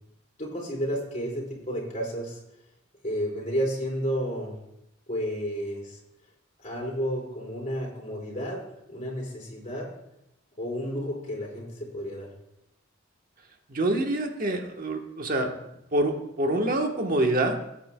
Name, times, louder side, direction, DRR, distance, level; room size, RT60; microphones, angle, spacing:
voice 1, 0.4-2.4 3.0-4.5 5.1-6.0 6.6-8.6 8.9-9.9 10.6-12.3, equal, 35° left, -4 dB, 4.4 m, -31 dB
voice 2, 13.7-15.5 15.9-17.5, right 1 dB, 45° right, 3 dB, 1.2 m, -26 dB
20.0 x 8.5 x 2.2 m, 0.84 s
head